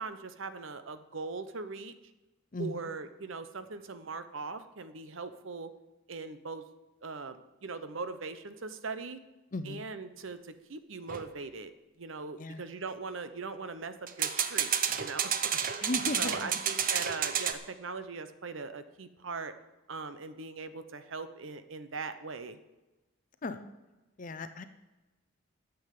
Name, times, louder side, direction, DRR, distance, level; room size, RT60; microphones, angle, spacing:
voice 1, 0.0-1.9 2.6-5.7 6.1-6.6 7.0-9.2 9.6-11.7 12.0-15.9 16.2-19.5 19.9-22.6, right 4 dB, 70° right, 11 dB, 0.9 m, -40 dB
voice 2, 2.5-2.9 9.5-9.9 12.4-12.6 15.8-16.6 23.4-23.6 24.2-24.7, left 2 dB, 40° left, 10 dB, 0.6 m, -36 dB
sound 1, 11.1-11.3 14.1-17.5, right 8 dB, 40° right, 0.7 m, -30 dB
9.7 x 7.2 x 8.4 m, 1.1 s
head